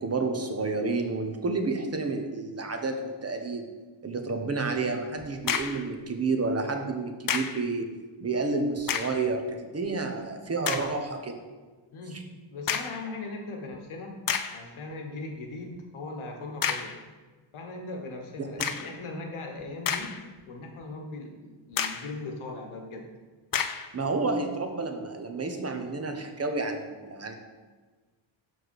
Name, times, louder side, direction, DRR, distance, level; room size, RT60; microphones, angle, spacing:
voice 1, 0.0-3.6 4.0-7.9 8.2-11.4 18.4-18.5 23.9-27.3, right 3 dB, 30° right, 5 dB, 0.9 m, -30 dB
sound 1, 5.2-5.9 7.3-7.7 8.8-9.3 9.9-10.0 10.6-11.0 12.7-13.1 13.7-13.8 14.3-14.7 16.6-17.0 18.6-19.0 19.6-20.4 20.8-20.9 21.8-22.1 23.5-23.9, left 7 dB, 45° left, 0.5 m, -30 dB
voice 2, 11.9-12.2 12.5-14.1 14.5-16.9 17.5-20.1 20.5-23.1, left 2 dB, 80° left, 2 dB, 1.3 m, -39 dB
6.6 x 4.7 x 4.7 m, 1.3 s
cardioid pair, 90°, 49 cm